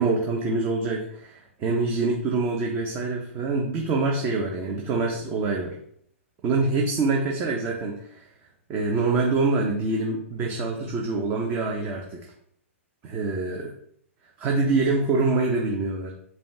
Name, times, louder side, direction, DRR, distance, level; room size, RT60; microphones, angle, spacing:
voice 1, 0.0-5.7 6.4-8.3 8.7-12.2 13.0-13.7 14.4-16.1, right 3 dB, 30° right, 0 dB, 0.7 m, -25 dB
5.1 x 2.3 x 3.4 m, 0.66 s
hypercardioid pair, 125°, 7 cm